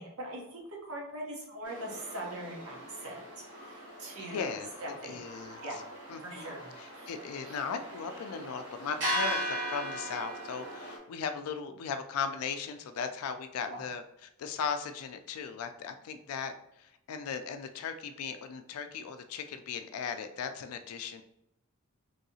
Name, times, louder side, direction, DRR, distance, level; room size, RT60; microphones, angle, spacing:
voice 1, 0.0-4.5 4.8-5.2 5.6-5.8 6.2-7.1 7.4-7.6 13.7-13.8, right 1 dB, 75° right, -1 dB, 0.9 m, -42 dB
sound 1, 1.6-11.0, equal, 55° right, 1.5 m, -39 dB
voice 2, 4.2-4.7 5.0-5.6 6.1-14.0 14.4-21.2, left 6 dB, 85° left, 8 dB, 0.3 m, -37 dB
3.1 x 2.7 x 2.7 m, 0.82 s
head